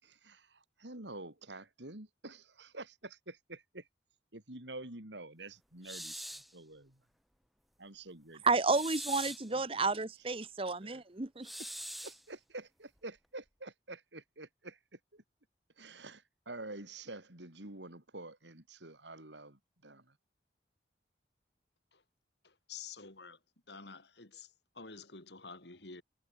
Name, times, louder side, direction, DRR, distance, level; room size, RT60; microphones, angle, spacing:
voice 1, 0.0-3.9 4.3-7.0 7.8-8.4 9.5-9.9 10.8-11.0 11.6-11.7 12.0-15.2 15.8-20.2, right 2 dB, 85° right, 4.9 m, -48 dB
sound 1, 5.8-6.5 8.6-9.5 11.4-12.2, equal, ahead, 3.1 m, -43 dB
voice 2, 8.4-11.5, right 3 dB, 30° right, 1.0 m, -31 dB
voice 3, 22.4-23.4 23.7-26.0, left 5 dB, 75° left, 3.4 m, -49 dB
head